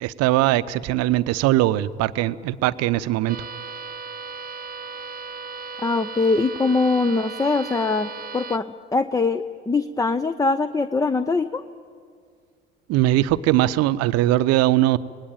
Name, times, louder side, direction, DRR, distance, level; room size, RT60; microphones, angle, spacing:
voice 1, 0.0-3.4 12.9-15.0, right 15 dB, 55° right, 15 dB, 0.8 m, -20 dB
sound 1, 3.3-8.6, right 4 dB, 30° right, 1.1 m, -36 dB
voice 2, 5.8-8.7 8.9-11.6, left 3 dB, 10° left, 13 dB, 0.7 m, -22 dB
26.5 x 19.5 x 9.1 m, 2.1 s
figure-of-eight pair, 55°, 31 cm